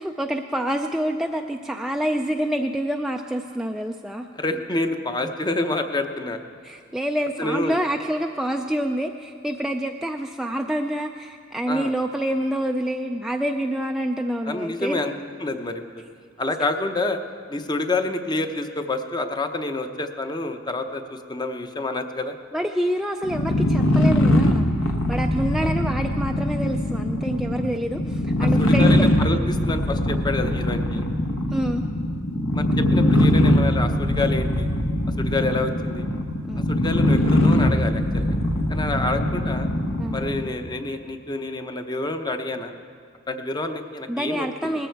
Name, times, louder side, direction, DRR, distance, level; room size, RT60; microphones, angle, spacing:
voice 1, 0.0-4.3 6.6-15.1 22.5-29.1 31.5-31.8 36.5-36.7 40.0-40.2 44.1-44.9, right 1 dB, ahead, 3 dB, 0.4 m, -27 dB
voice 2, 4.3-6.4 7.4-7.8 11.7-11.9 14.4-15.1 15.4-15.8 16.4-17.2 17.5-22.3 25.6-25.7 28.4-31.0 32.5-34.7 35.2-36.1 36.7-38.3 38.7-39.7 40.1-42.8 43.3-44.8, left 2 dB, 20° left, 7 dB, 0.7 m, -28 dB
sound 1, 23.2-40.5, left 1 dB, 70° left, 1.2 m, -21 dB
19.0 x 14.5 x 4.6 m, 2.3 s
head